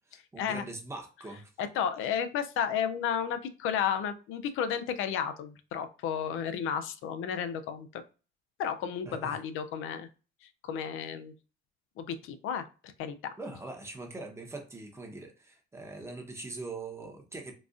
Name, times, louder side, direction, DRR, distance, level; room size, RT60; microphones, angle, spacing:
voice 1, 0.1-1.5 9.1-9.4 13.4-17.5, right 3 dB, 15° right, 2 dB, 0.8 m, -42 dB
voice 2, 1.6-8.0 8.6-10.1 10.6-11.3 12.0-13.3, left 8 dB, 75° left, 10 dB, 0.4 m, -32 dB
3.9 x 2.4 x 2.4 m, 0.34 s
cardioid pair, 105°, 21 cm